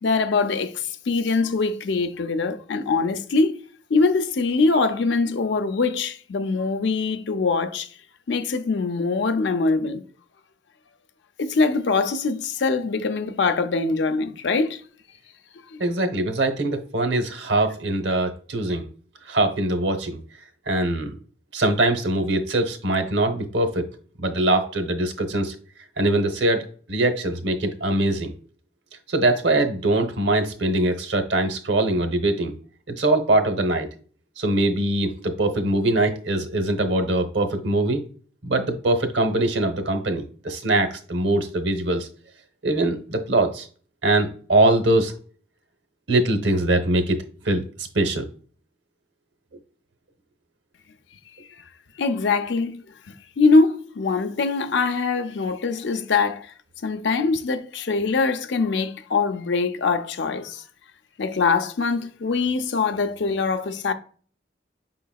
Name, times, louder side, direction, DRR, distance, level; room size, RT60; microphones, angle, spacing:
voice 1, 0.0-3.6 3.9-7.9 8.3-10.0 11.4-14.8 15.7-15.8 51.4-51.6 52.0-56.5 56.8-60.6 61.2-63.9, left 4 dB, 80° left, 0.5 m, -23 dB
voice 2, 15.8-18.9 19.2-20.2 20.7-21.1 21.5-23.9 24.2-25.5 26.0-28.3 29.1-32.5 32.9-33.9 34.4-38.0 38.4-42.1 42.6-43.7 44.0-45.1 46.1-47.6 47.9-48.3, right 2 dB, 85° right, 0.9 m, -22 dB
5.6 x 3.8 x 2.3 m
head